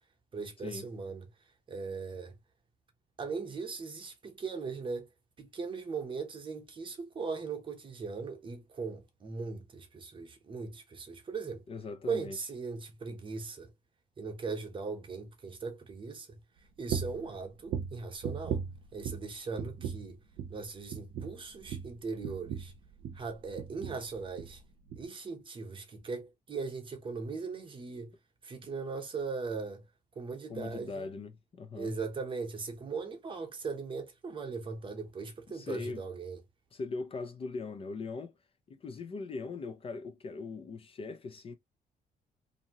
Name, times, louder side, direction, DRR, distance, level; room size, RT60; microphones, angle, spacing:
voice 1, 0.3-1.3 1.7-2.4 3.2-5.1 5.4-11.6 12.1-13.7 14.2-16.4 16.8-18.6 18.9-20.2 20.5-22.7 23.1-24.6 25.0-28.1 28.4-29.8 30.2-31.1 31.7-36.4, right 4 dB, 35° right, 0.9 m, -39 dB
voice 2, 11.7-12.4 30.5-31.9 35.5-36.0 36.7-38.3 38.7-41.5, left 4 dB, 35° left, 0.5 m, -40 dB
sound 1, 16.9-17.3 17.7-19.3 19.6-20.1 20.4-20.6 20.9-23.3 23.6-24.1 24.4-24.6 24.9-25.0, right 7 dB, 70° right, 0.6 m, -37 dB
2.7 x 2.6 x 2.8 m
cardioid pair, 145°, 16 cm